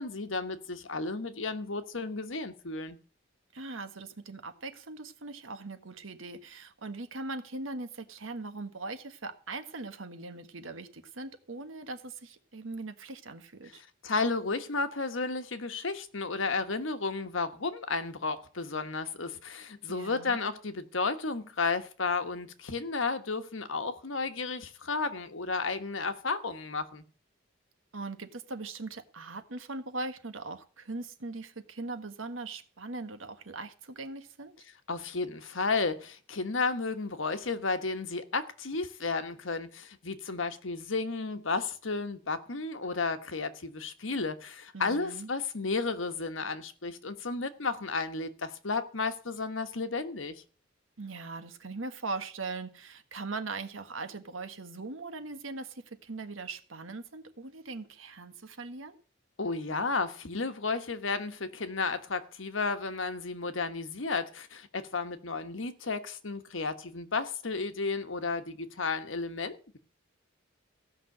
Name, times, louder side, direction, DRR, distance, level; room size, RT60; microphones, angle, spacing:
voice 1, 0.0-3.0 14.0-27.0 34.9-50.4 59.4-69.8, left 4 dB, 70° left, 1.3 m, -33 dB
voice 2, 3.5-13.8 19.9-20.4 27.9-34.5 44.7-45.3 51.0-58.9, right 3 dB, 70° right, 1.5 m, -40 dB
15.5 x 6.1 x 7.8 m
head